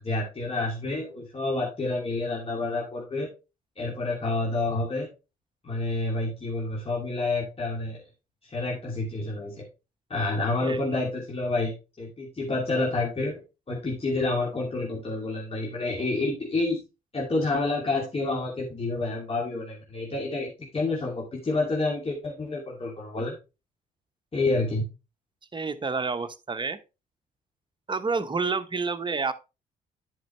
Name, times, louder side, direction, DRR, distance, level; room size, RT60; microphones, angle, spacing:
voice 1, 0.0-3.3 3.8-5.1 5.6-8.0 8.4-9.6 10.1-13.3 13.7-16.8 17.1-23.4 24.3-24.8, left 2 dB, 30° left, 2.7 m, -29 dB
voice 2, 25.5-26.8 27.9-29.3, right 4 dB, 25° right, 1.0 m, -29 dB
10.5 x 5.3 x 3.3 m
hypercardioid pair, 55°, 19 cm